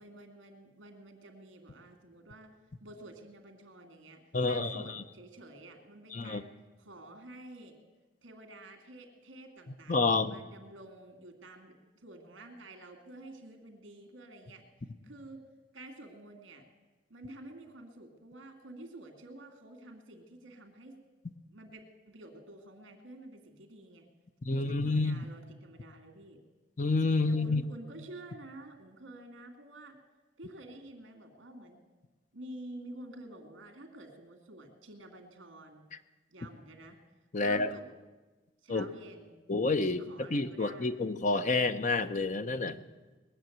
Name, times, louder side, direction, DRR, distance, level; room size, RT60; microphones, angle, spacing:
voice 1, 0.0-2.5 2.8-7.8 8.2-14.6 15.0-15.4 15.7-16.7 17.1-21.0 21.5-24.1 24.5-26.4 27.3-30.0 30.4-31.8 32.3-35.9 36.3-37.0 37.4-37.9 38.6-39.4 40.0-41.0, right 1 dB, 75° right, 5 dB, 2.4 m, -50 dB
voice 2, 4.3-4.8 6.1-6.4 9.9-10.4 24.4-25.2 26.8-27.6 37.3-37.7 38.7-38.9 39.5-42.8, left 3 dB, 40° left, 10 dB, 0.7 m, -29 dB
20.5 x 7.2 x 9.2 m, 1.2 s
head